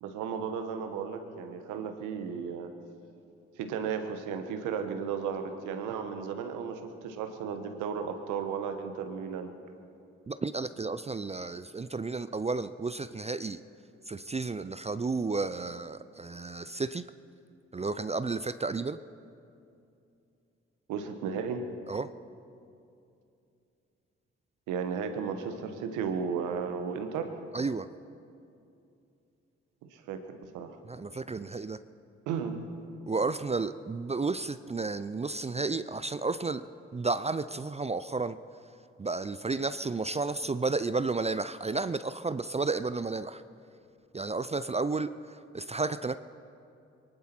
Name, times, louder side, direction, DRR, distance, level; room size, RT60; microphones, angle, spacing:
voice 1, 0.0-2.7 3.6-9.5 20.9-21.6 24.7-27.3 29.8-30.8 32.3-32.6, right 6 dB, 80° right, 7 dB, 1.2 m, -34 dB
voice 2, 10.3-13.6 14.1-17.0 17.7-19.0 21.9-22.1 27.5-27.9 30.8-31.8 33.1-36.6 36.9-38.4 39.0-43.4 44.1-46.1, right 3 dB, 20° right, 13 dB, 0.5 m, -32 dB
24.0 x 11.5 x 4.5 m, 2.6 s
hypercardioid pair, 40°, 30 cm